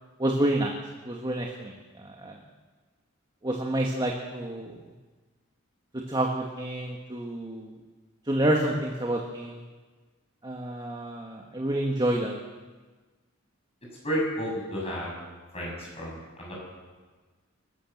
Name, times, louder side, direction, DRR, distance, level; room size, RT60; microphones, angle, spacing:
voice 1, 0.2-0.7 1.0-2.4 3.4-4.7 6.1-7.8 8.3-9.6 10.4-12.4, right 1 dB, 20° right, 1 dB, 1.7 m, -28 dB
voice 2, 14.0-15.1 15.5-16.5, equal, 30° left, -3 dB, 7.1 m, -31 dB
28.0 x 12.5 x 7.4 m, 1.4 s
head